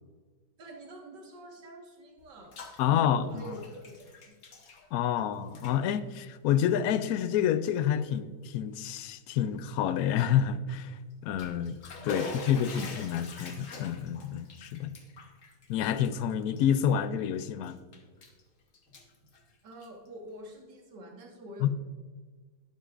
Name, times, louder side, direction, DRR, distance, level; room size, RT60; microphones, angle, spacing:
voice 1, 0.6-2.6 2.9-4.4 12.1-12.8 19.6-21.7, right 1 dB, 80° right, 0 dB, 2.2 m, -47 dB
Bathtub (filling or washing), 2.2-2.8 3.1-5.2 5.5-5.8 6.5-6.7 7.3-7.4 7.8-7.9 11.1-17.2 17.6-18.4 18.7-20.1, left 4 dB, 50° left, 1.4 m, -43 dB
voice 2, 2.8-3.5 4.9-11.8 12.0-14.9 15.7-17.8 21.6-21.7, left 9 dB, 70° left, 13 dB, 0.9 m, -28 dB
12.0 x 9.8 x 2.5 m, 1.4 s
omnidirectional pair, 1.9 m